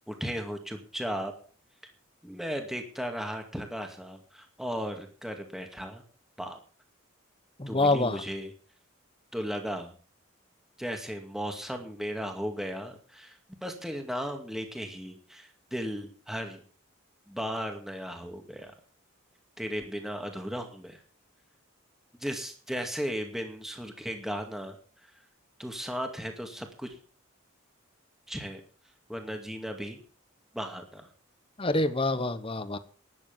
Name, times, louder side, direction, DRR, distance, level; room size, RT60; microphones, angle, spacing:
voice 1, 0.1-1.3 2.2-6.0 6.4-6.6 7.7-8.5 9.3-9.9 10.8-16.6 17.3-18.7 19.6-21.0 22.2-24.8 25.0-25.2 25.6-27.0 28.3-28.6 29.1-30.0 30.5-31.1, equal, ahead, 4 dB, 2.2 m, -36 dB
voice 2, 7.6-8.2 31.6-32.8, left 2 dB, 25° left, 12 dB, 1.1 m, -26 dB
12.5 x 10.5 x 7.3 m, 0.42 s
head